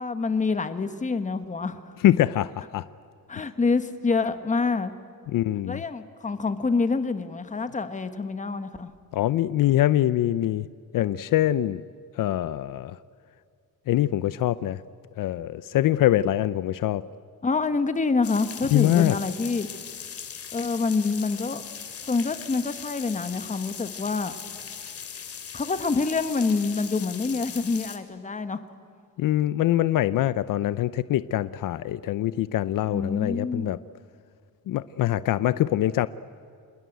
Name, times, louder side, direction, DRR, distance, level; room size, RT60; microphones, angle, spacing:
voice 1, 0.0-1.9 3.3-4.9 5.7-8.9 17.4-19.7 20.5-21.6 22.1-24.4 25.5-28.6 32.9-33.7, left 4 dB, 20° left, 10 dB, 1.3 m, -26 dB
voice 2, 2.0-2.8 5.3-5.8 9.1-10.7 10.9-11.8 12.2-13.0 13.9-14.8 15.2-17.0 18.7-19.2 29.2-33.8 34.7-36.1, left 13 dB, 70° left, 16 dB, 0.6 m, -24 dB
sound 1, 18.2-28.0, left 7 dB, 45° left, 2.4 m, -39 dB
26.5 x 20.5 x 9.2 m, 2.5 s
cardioid pair, 160°, 34 cm